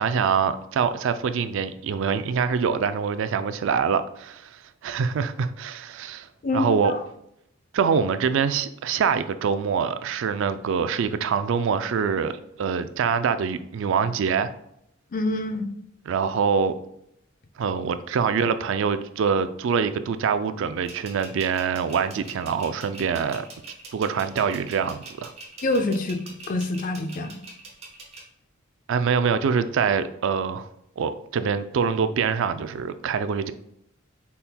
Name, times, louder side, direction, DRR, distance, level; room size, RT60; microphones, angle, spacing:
voice 1, 0.0-6.3 6.5-6.9 7.7-14.5 16.1-16.7 17.6-23.5 23.9-25.3 28.9-30.7 31.0-33.5, right 6 dB, 65° right, 0.3 m, -25 dB
voice 2, 6.4-7.0 15.1-15.7 25.6-27.4, left 2 dB, 40° left, 0.5 m, -26 dB
sound 1, 20.8-28.2, right 2 dB, 30° right, 1.1 m, -43 dB
5.5 x 4.2 x 2.2 m
head